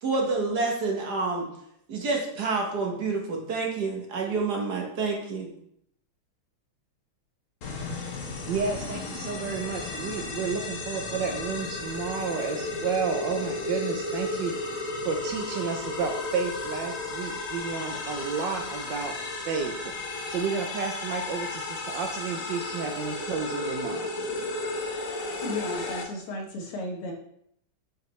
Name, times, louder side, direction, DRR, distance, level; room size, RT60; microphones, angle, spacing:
voice 1, 0.0-1.5 1.9-5.5, right 3 dB, 55° right, 0 dB, 1.4 m, -28 dB
sound 1, 7.6-26.0, left 2 dB, 50° left, 1.0 m, -34 dB
voice 2, 8.5-14.5 15.0-19.1 19.5-19.7 20.3-24.1, right 5 dB, 70° right, 3 dB, 1.2 m, -31 dB
voice 3, 25.4-27.1, left 1 dB, 90° left, 1 dB, 2.1 m, -34 dB
6.5 x 4.5 x 3.2 m, 0.71 s
omnidirectional pair, 2.3 m